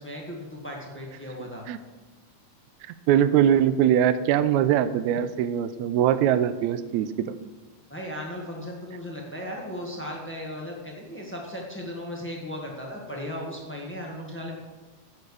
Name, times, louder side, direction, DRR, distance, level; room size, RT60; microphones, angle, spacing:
voice 1, 0.0-1.6 7.9-14.6, left 1 dB, 15° left, -1 dB, 0.4 m, -36 dB
voice 2, 3.1-7.4, right 10 dB, 75° right, 12 dB, 1.8 m, -22 dB
17.0 x 7.4 x 4.9 m, 1.3 s
omnidirectional pair, 3.7 m